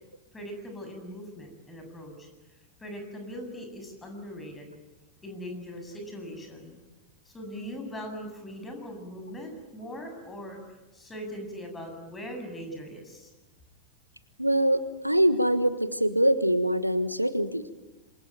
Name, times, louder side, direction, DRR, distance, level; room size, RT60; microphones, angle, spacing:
voice 1, 0.3-2.3 2.8-4.7 5.2-6.8 7.3-10.6 10.9-13.3, equal, 15° left, 4 dB, 7.7 m, -40 dB
voice 2, 14.4-17.7, right 1 dB, 90° right, 13 dB, 1.4 m, -24 dB
27.5 x 23.0 x 9.1 m, 1.1 s
figure-of-eight pair, 90°, 0 cm